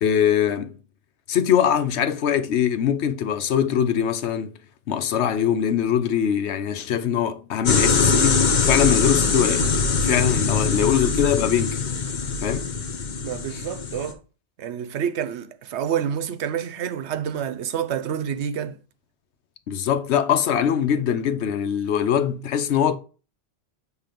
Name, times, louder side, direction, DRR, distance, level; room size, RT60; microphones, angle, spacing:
voice 1, 0.0-0.7 1.3-4.6 4.9-9.7 10.0-11.8 12.4-12.7 13.5-13.6 19.7-23.0, left 9 dB, 75° left, 1.0 m, -22 dB
sound 1, 7.7-14.1, left 4 dB, 45° left, 0.9 m, -22 dB
voice 2, 13.2-14.2 14.6-18.8, right 8 dB, 80° right, 0.9 m, -28 dB
7.5 x 3.4 x 5.0 m
omnidirectional pair, 1.1 m